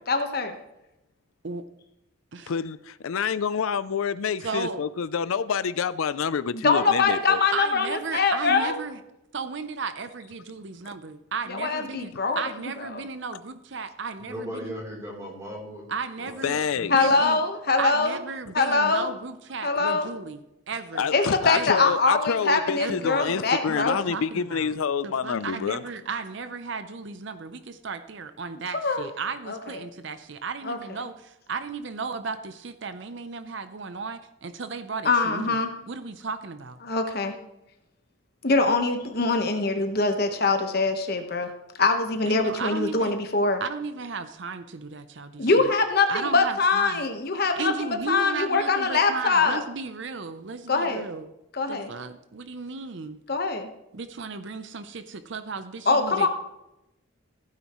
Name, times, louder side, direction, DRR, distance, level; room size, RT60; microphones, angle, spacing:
voice 1, 0.1-0.5 6.5-8.7 11.5-12.4 12.9-13.0 16.9-18.2 18.5-19.1 19.6-20.1 21.1-24.0 28.7-29.1 29.5-29.6 30.6-30.8 35.0-35.7 36.8-37.3 38.4-41.5 41.8-43.6 45.4-49.6 50.7-51.0 51.5-51.9 53.3-53.7 55.9-56.3, left 3 dB, 45° left, 1.2 m, -23 dB
voice 2, 2.5-7.4 10.8-10.9 16.4-17.1 20.9-25.8, left 6 dB, 80° left, 0.4 m, -28 dB
voice 3, 4.4-4.8 7.5-9.0 9.3-14.7 15.9-16.6 16.9-17.4 17.8-21.1 21.5-21.9 22.8-23.2 23.6-24.7 25.0-35.6 35.9-36.8 42.3-43.1 43.6-45.7 46.1-47.0 47.6-51.3 51.7-53.2 53.9-56.3, right 4 dB, 60° right, 0.6 m, -35 dB
voice 4, 14.2-15.9 16.2-17.3, equal, 15° right, 3.4 m, -38 dB
15.5 x 9.5 x 3.1 m
head